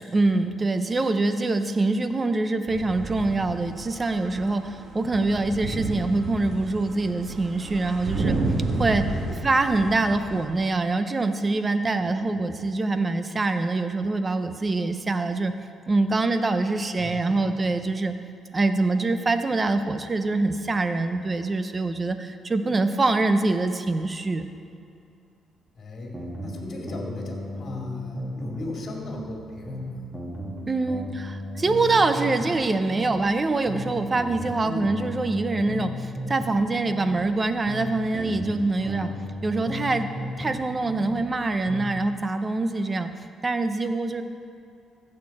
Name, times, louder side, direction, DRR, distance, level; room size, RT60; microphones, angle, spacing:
voice 1, 0.1-8.4 8.8-9.0 9.4-15.6 15.9-18.2 18.5-24.4 30.7-39.1 39.4-43.1 43.4-44.2, right 3 dB, 30° right, 9 dB, 0.7 m, -24 dB
sound 1, 2.7-10.5, right 2 dB, 65° right, 1.4 m, -31 dB
voice 2, 8.1-8.5 9.1-9.4 12.0-12.3 17.0-17.5 25.7-30.0 34.6-34.9 38.8-39.3, left 2 dB, 45° left, -1 dB, 2.3 m, -38 dB
sound 2, 26.1-28.6 28.9-32.6 32.9-36.6 36.9-40.6 40.9-42.0, left 1 dB, 10° right, 1.9 m, -35 dB
15.0 x 6.6 x 4.3 m, 2.5 s
cardioid pair, 90°, 0 cm